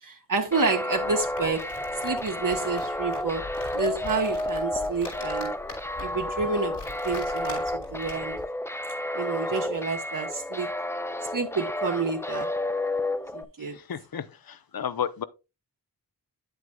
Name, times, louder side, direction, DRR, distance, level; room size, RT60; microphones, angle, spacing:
voice 1, 0.0-1.7 2.0-3.4 3.7-5.5 6.0-6.8 7.0-8.4 9.1-10.7 11.3-12.5 13.3-13.8, right 4 dB, 55° right, 1.0 m, -29 dB
sound 1, 0.5-13.4, left 1 dB, 5° left, 0.5 m, -31 dB
sound 2, 1.0-8.4, left 2 dB, 80° left, 4.5 m, -43 dB
voice 2, 13.6-15.2, left 8 dB, 65° left, 0.7 m, -33 dB
9.3 x 8.0 x 2.2 m
wide cardioid pair, 70°, 39 cm